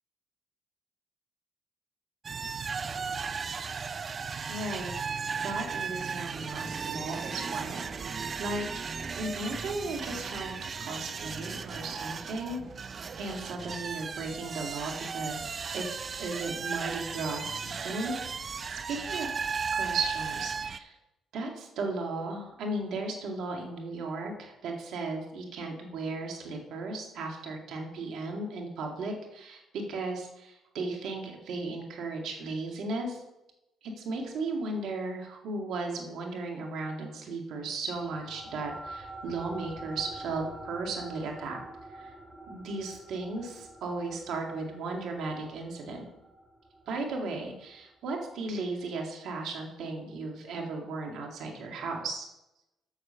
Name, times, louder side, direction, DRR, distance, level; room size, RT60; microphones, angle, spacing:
sound 1, 2.2-20.8, right 5 dB, 45° right, 0.6 m, -36 dB
voice 1, 4.5-4.9 5.3-12.6 13.2-15.9 16.2-19.4 19.7-20.9 21.3-33.2 34.0-41.6 41.9-42.1 42.5-46.1 46.9-52.3, right 3 dB, 70° right, 2 dB, 2.1 m, -36 dB
sound 2, 37.9-48.7, right 2 dB, 15° right, 2.5 m, -47 dB
8.4 x 6.2 x 6.7 m, 0.91 s
supercardioid pair, 55°, 0 cm